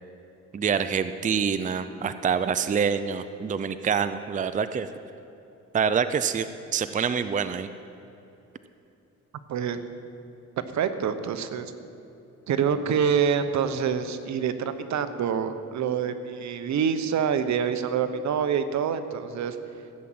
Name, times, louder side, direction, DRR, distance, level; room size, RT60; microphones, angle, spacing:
voice 1, 0.5-4.9 5.7-6.5 6.7-7.7, right 6 dB, 25° right, 11 dB, 0.5 m, -26 dB
voice 2, 9.5-9.8 10.7-11.7 12.5-19.6, right 7 dB, 65° right, 10 dB, 1.0 m, -26 dB
15.5 x 7.4 x 8.7 m, 2.8 s
cardioid pair, 90°, 30 cm